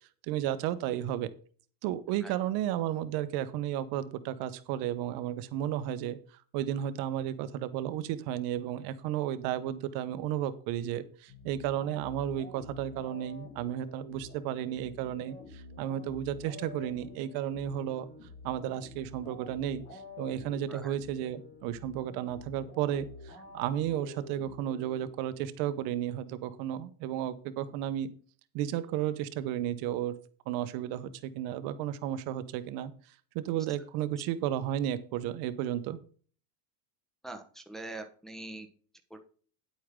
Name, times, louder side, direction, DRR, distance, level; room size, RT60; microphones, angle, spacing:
voice 1, 0.2-1.3 1.8-6.2 6.5-18.1 18.4-28.1 28.5-30.2 30.5-32.9 33.3-36.0, right 11 dB, 50° right, 13 dB, 1.0 m, -33 dB
sound 1, 11.3-25.6, left 3 dB, 30° left, 3.9 m, -49 dB
voice 2, 37.2-38.7 39.1-39.2, right 2 dB, ahead, 3 dB, 1.1 m, -43 dB
10.0 x 8.5 x 3.7 m, 0.42 s
supercardioid pair, 150°, 45 cm